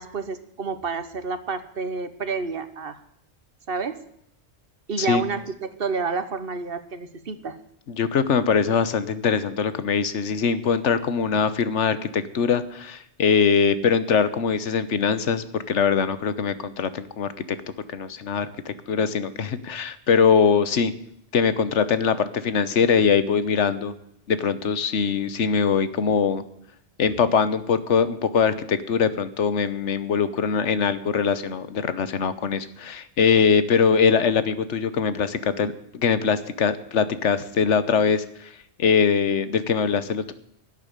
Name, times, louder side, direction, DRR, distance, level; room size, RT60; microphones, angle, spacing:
voice 1, 0.0-3.0 3.7-4.0 4.9-7.6, right 4 dB, 55° right, 12 dB, 1.2 m, -29 dB
voice 2, 7.9-17.6 17.9-20.9 21.3-23.9 24.3-26.4 27.0-38.5 38.8-40.3, left 6 dB, 90° left, 14 dB, 1.3 m, -22 dB
12.0 x 8.3 x 9.9 m, 0.74 s
omnidirectional pair, 1.2 m